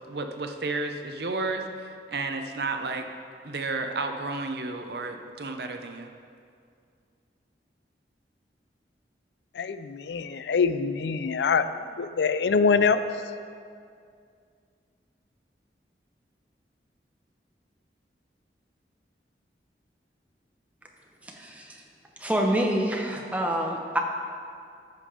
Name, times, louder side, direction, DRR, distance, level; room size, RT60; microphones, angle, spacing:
voice 1, 0.1-3.1 3.4-6.1, right 3 dB, 65° right, 5 dB, 0.8 m, -32 dB
voice 2, 9.5-11.7 12.0-13.0, left 5 dB, 80° left, 12 dB, 0.4 m, -24 dB
voice 3, 21.2-21.8 22.2-24.0, right 1 dB, 10° right, 0 dB, 0.9 m, -27 dB
14.0 x 5.4 x 5.0 m, 2.3 s
head